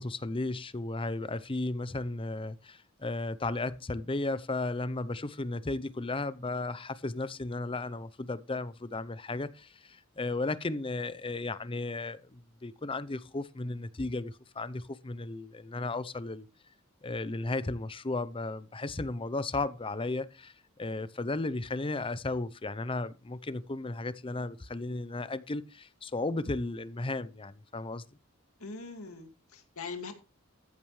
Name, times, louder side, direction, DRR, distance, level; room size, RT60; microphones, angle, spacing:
voice 1, 0.0-16.5 17.0-28.0, left 2 dB, 25° left, 0.6 m, -35 dB
voice 2, 28.6-30.1, left 4 dB, 90° left, 2.3 m, -42 dB
14.0 x 9.0 x 3.2 m
head